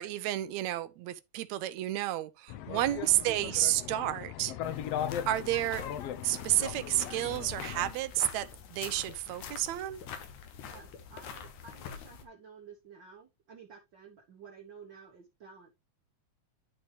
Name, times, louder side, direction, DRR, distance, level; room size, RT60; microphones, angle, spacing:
voice 1, 0.0-4.5 5.3-5.9 6.2-10.0, right 15 dB, 80° right, 1.9 m, -31 dB
sound 1, 2.5-7.9, left 10 dB, 70° left, 1.6 m, -38 dB
sound 2, 3.5-3.6 4.5-4.6 5.4-5.5 6.3-6.4 7.2-7.3 8.1-8.2 9.1-9.2 10.0-10.1 10.9-11.0 11.8-11.9, left 6 dB, 55° left, 1.8 m, -50 dB
sound 3, 4.6-12.2, left 7 dB, 90° left, 2.5 m, -46 dB
voice 2, 10.6-15.7, right 5 dB, 55° right, 1.4 m, -52 dB
11.5 x 4.2 x 3.2 m
omnidirectional pair, 3.3 m